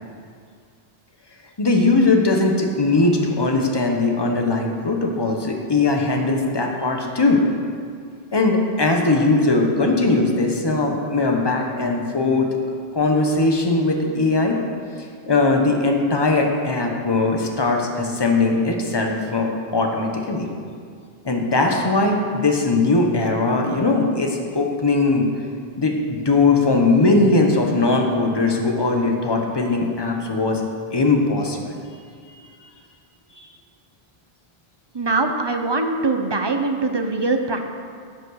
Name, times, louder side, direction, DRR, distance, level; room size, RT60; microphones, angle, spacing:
voice 1, 1.6-7.4 8.3-12.5 12.9-14.6 15.3-20.5 21.2-25.2 25.8-30.6 30.9-31.8, left 3 dB, 25° left, 2 dB, 1.1 m, -20 dB
voice 2, 34.9-37.7, right 3 dB, 30° right, 5 dB, 0.7 m, -22 dB
10.5 x 7.5 x 6.5 m, 2.1 s
omnidirectional pair, 1.1 m